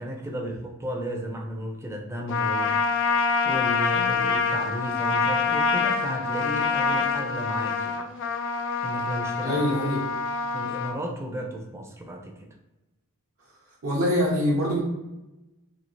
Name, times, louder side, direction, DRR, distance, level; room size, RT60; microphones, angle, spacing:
voice 1, 0.0-8.0 8.8-9.6 10.5-12.5, equal, 10° right, 2 dB, 0.4 m, -34 dB
Trumpet, 2.3-11.0, left 5 dB, 60° left, 0.3 m, -26 dB
voice 2, 9.4-10.1 13.8-14.8, equal, 65° right, -4 dB, 0.6 m, -24 dB
3.0 x 2.7 x 2.6 m, 1.0 s
head